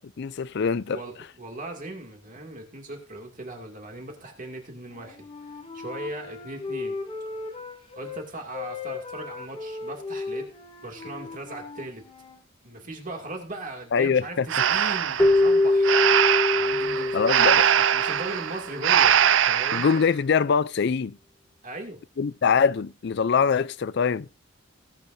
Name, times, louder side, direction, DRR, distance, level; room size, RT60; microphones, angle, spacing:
voice 1, 0.2-1.0 13.9-14.4 17.1-17.7 19.7-21.2 22.2-24.3, left 6 dB, 60° left, 0.4 m, -23 dB
voice 2, 0.8-7.0 7.9-10.5 10.8-12.0 12.6-16.1 16.6-19.9 21.6-22.0, right 2 dB, 45° right, 2.4 m, -38 dB
Wind instrument woodwind instrument, 4.8-8.2 8.5-12.4, left 3 dB, 30° left, 3.3 m, -37 dB
Breathing, 14.5-20.0, right 9 dB, 75° right, 0.5 m, -22 dB
Keyboard (musical), 15.2-18.4, left 2 dB, 10° left, 0.6 m, -23 dB
19.5 x 8.9 x 2.7 m
head